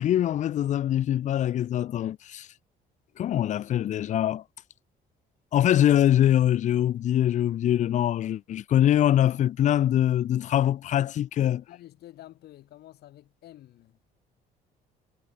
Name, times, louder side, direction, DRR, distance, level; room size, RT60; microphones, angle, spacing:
voice 1, 0.0-2.5 3.2-4.4 5.5-11.6, left 11 dB, 45° left, 0.5 m, -23 dB
voice 2, 11.7-14.0, left 14 dB, 70° left, 7.6 m, -49 dB
cardioid pair, 110°, 17 cm